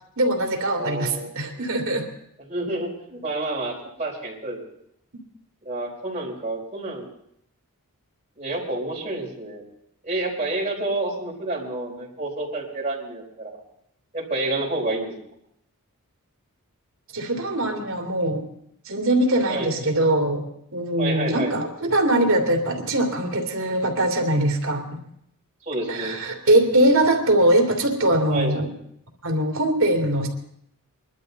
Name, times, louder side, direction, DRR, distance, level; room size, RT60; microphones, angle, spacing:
voice 1, 0.2-2.1 17.1-18.4 18.9-20.4 20.7-25.0 25.9-28.7 29.2-30.3, right 1 dB, 65° right, 2 dB, 2.8 m, -22 dB
voice 2, 0.7-1.3 2.5-3.7 4.0-4.6 5.6-7.1 8.4-9.6 10.0-13.6 14.1-15.1 19.5-19.7 21.0-21.5 25.7-26.2 28.3-28.5, right 2 dB, 30° right, -4 dB, 4.4 m, -29 dB
22.5 x 12.0 x 4.0 m, 0.72 s
head